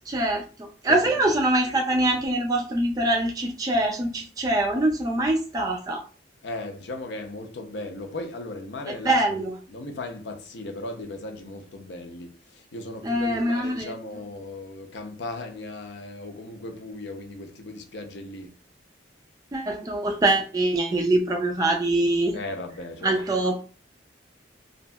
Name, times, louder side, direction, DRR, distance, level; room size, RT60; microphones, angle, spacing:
voice 1, 0.1-6.0 9.0-9.6 13.0-13.9 19.5-22.4 23.0-23.6, right 1 dB, 20° right, 0.3 m, -24 dB
voice 2, 0.9-1.3 6.4-9.4 9.7-18.6 22.3-23.2, left 2 dB, 70° left, 0.6 m, -37 dB
2.8 x 2.6 x 2.2 m
head